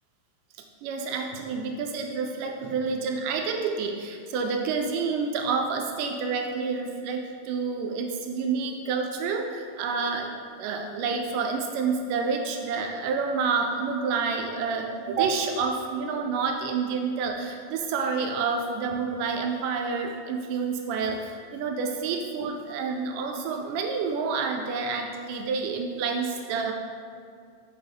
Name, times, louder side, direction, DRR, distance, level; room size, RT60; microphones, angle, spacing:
voice 1, 0.8-26.7, right 5 dB, 80° right, 3 dB, 2.0 m, -29 dB
6.6 x 6.0 x 3.5 m, 2.2 s
omnidirectional pair, 4.0 m